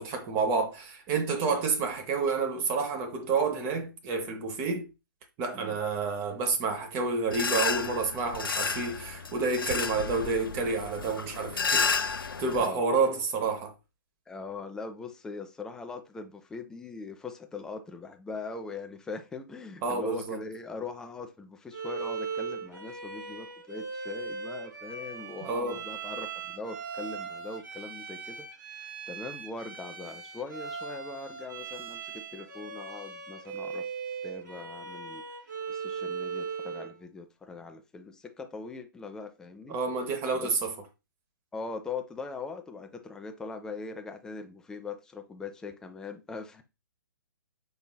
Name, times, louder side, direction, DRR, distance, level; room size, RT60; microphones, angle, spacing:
voice 1, 0.0-4.9 5.4-13.7 19.8-20.4 25.4-25.8 39.7-40.7, right 4 dB, 20° right, 0.7 m, -29 dB
sound 1, 7.3-12.7, left 5 dB, 75° left, 0.5 m, -31 dB
voice 2, 12.5-12.8 14.3-33.9 34.2-35.2 35.7-39.8 40.3-40.5 41.5-46.6, left 4 dB, 5° left, 0.4 m, -41 dB
Bowed string instrument, 21.7-36.9, right 5 dB, 60° right, 2.7 m, -39 dB
5.4 x 3.8 x 2.2 m
figure-of-eight pair, 130°, 12 cm